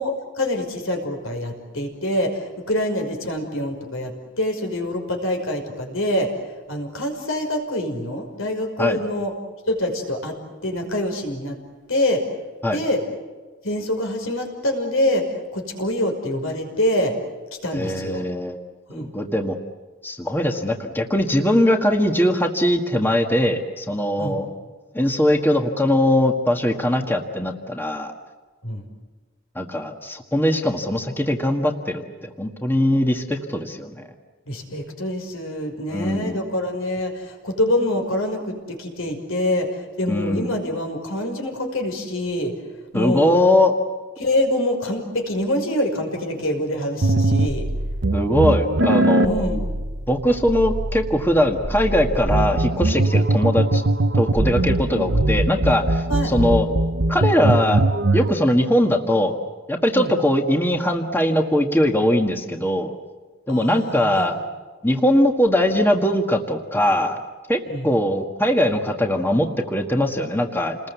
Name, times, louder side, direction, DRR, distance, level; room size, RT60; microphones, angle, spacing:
voice 1, 0.0-6.4 6.7-9.3 9.7-11.6 11.9-12.3 12.7-13.0 13.6-17.1 17.6-18.3 18.9-19.1 24.2-24.4 28.6-28.9 34.5-42.5 42.9-43.4 44.2-47.6 49.2-49.6 56.1-56.3 59.9-60.1 63.5-64.4 67.7-67.9, left 1 dB, 80° left, 4 dB, 5.7 m, -25 dB
voice 2, 17.7-18.6 18.9-19.6 20.0-24.5 24.9-28.1 29.5-34.1 35.9-36.4 40.1-40.5 42.9-43.7 48.1-49.4 50.1-53.8 54.1-56.7 57.1-57.8 58.1-59.4 59.7-62.9 63.5-64.4 64.8-67.2 67.5-70.9, left 1 dB, 10° left, 3 dB, 1.6 m, -21 dB
sound 1, 47.0-58.3, right 2 dB, 60° right, 1.0 m, -21 dB
29.0 x 21.0 x 8.3 m, 1.4 s
head